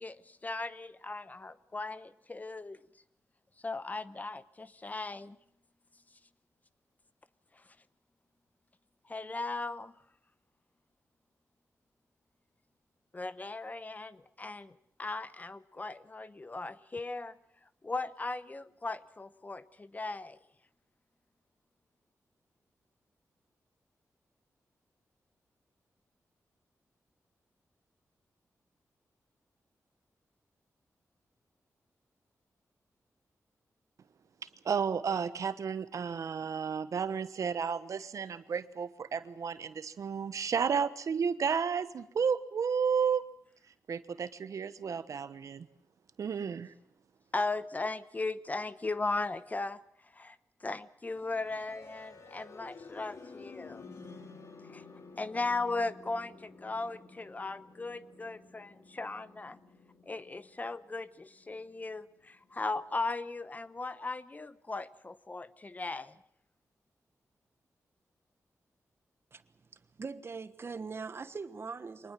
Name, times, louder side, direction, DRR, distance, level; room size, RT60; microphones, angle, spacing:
voice 1, 0.0-2.8 3.6-5.4 7.6-7.7 9.1-9.9 13.1-17.4 17.8-20.4 47.3-49.8 50.1-53.8 54.7-54.8 55.2-59.6 60.1-66.2, left 3 dB, 30° left, 0.9 m, -37 dB
voice 2, 34.6-43.2 43.9-45.7 46.2-46.7, right 6 dB, 75° right, 1.1 m, -32 dB
sound 1, 51.1-63.0, left 3 dB, 60° left, 3.0 m, -52 dB
voice 3, 69.3-72.1, right 4 dB, 45° right, 1.3 m, -42 dB
24.5 x 19.5 x 7.6 m
wide cardioid pair, 95°, 6 cm